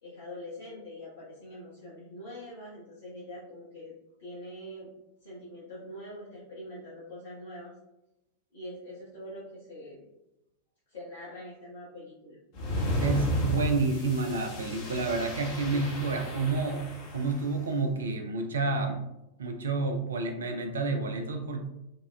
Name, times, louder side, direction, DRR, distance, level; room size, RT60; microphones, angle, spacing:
voice 1, 0.0-3.9 4.2-4.9 5.2-7.7 8.5-10.1 10.9-12.4, left 1 dB, 70° left, -9 dB, 1.0 m, -44 dB
sound 1, 12.5-17.4, equal, 45° left, 0.8 m, -33 dB
voice 2, 13.0-19.0 19.4-21.7, right 3 dB, 70° right, 5 dB, 0.4 m, -29 dB
4.8 x 2.3 x 2.2 m, 0.92 s
figure-of-eight pair, 90°, 0 cm